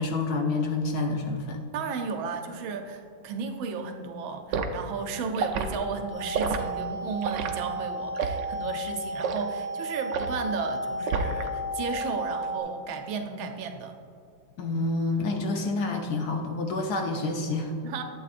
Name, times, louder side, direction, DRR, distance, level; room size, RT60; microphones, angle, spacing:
voice 1, 0.0-1.6 14.6-17.7, left 3 dB, 65° left, 2 dB, 1.1 m, -28 dB
voice 2, 1.7-14.0 17.8-18.0, right 5 dB, 90° right, 5 dB, 1.5 m, -34 dB
Liquid, 4.5-4.7 5.3-5.7 6.3-6.6 7.2-7.5 8.2-8.4 9.2-9.4 10.1-10.4 11.1-11.5 11.8-12.1, right 6 dB, 70° right, 1.3 m, -29 dB
sound 1, 6.1-12.6, right 1 dB, 20° left, 2.1 m, -33 dB
11.5 x 8.3 x 2.5 m, 2.5 s
omnidirectional pair, 2.1 m